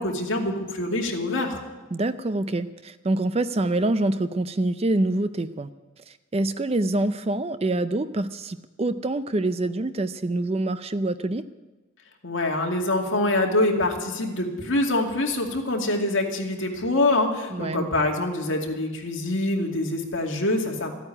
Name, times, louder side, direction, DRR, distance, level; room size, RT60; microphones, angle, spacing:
voice 1, 0.0-1.6 12.2-20.9, left 2 dB, 65° left, 1 dB, 2.4 m, -25 dB
voice 2, 1.9-5.7 6.1-11.5 17.5-17.9, right 2 dB, 30° right, 12 dB, 0.5 m, -26 dB
14.5 x 9.1 x 9.8 m, 1.2 s
head